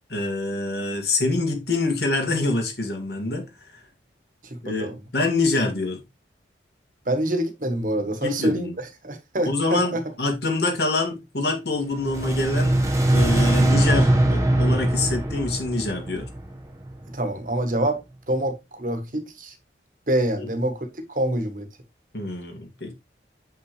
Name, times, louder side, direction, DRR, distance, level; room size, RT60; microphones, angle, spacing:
voice 1, 0.1-3.4 4.6-6.0 8.2-8.8 9.4-12.8 13.1-16.3 20.4-20.5 22.1-22.9, left 2 dB, 65° left, 2.3 m, -25 dB
voice 2, 4.7-5.0 7.1-10.0 17.1-19.5 20.1-21.7, right 1 dB, 45° right, 1.3 m, -26 dB
sound 1, 11.9-17.1, right 1 dB, 15° right, 1.2 m, -21 dB
7.5 x 5.6 x 3.2 m
head